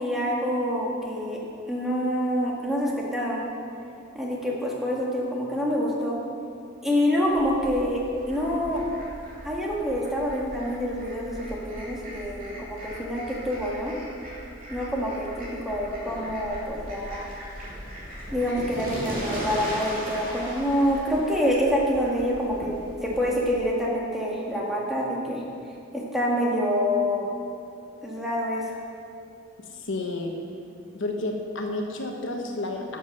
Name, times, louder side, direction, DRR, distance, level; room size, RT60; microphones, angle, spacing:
voice 1, 0.0-1.4 1.7-3.4 4.2-6.2 6.8-8.0 8.3-8.8 9.4-14.0 14.7-17.3 18.3-22.7 23.0-25.4 25.9-27.3 28.0-28.8, equal, ahead, -4 dB, 1.8 m, -26 dB
Fowl, 7.3-23.6, equal, 45° right, 3.0 m, -39 dB
voice 2, 29.7-30.3 30.9-33.0, left 2 dB, 70° left, 2 dB, 1.2 m, -31 dB
11.0 x 7.3 x 6.5 m, 2.6 s
head